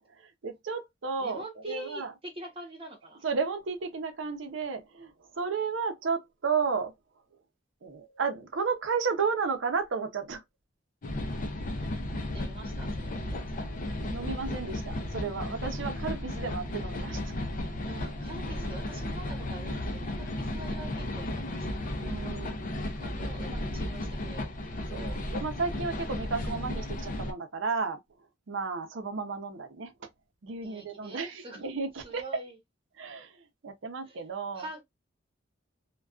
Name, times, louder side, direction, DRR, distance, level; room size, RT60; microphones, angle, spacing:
voice 1, 0.1-2.1 3.2-6.9 7.8-10.4 11.6-11.7 14.0-17.3 17.7-18.0 22.0-22.8 24.9-28.0 28.5-30.1 30.4-32.2 33.0-34.7, right 5 dB, 70° right, 0.6 m, -33 dB
voice 2, 1.2-3.2 12.3-13.7 17.8-21.8 23.0-24.5 30.6-31.6 32.0-32.6 34.1-34.2 34.5-34.8, right 2 dB, 30° right, 0.9 m, -45 dB
sound 1, 11.0-27.3, left 1 dB, 45° left, 0.5 m, -34 dB
2.3 x 2.2 x 2.3 m
head